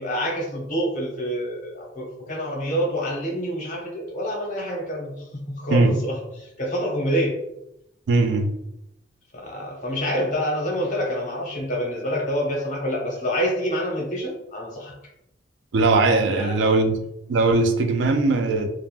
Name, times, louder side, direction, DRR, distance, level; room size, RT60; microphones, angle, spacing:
voice 1, 0.0-7.4 9.3-14.9 16.3-16.8, equal, 45° left, -1 dB, 0.8 m, -27 dB
voice 2, 8.1-8.5 15.7-17.0 17.3-18.7, right 3 dB, 80° right, 7 dB, 0.4 m, -19 dB
3.2 x 2.0 x 2.4 m, 0.82 s
head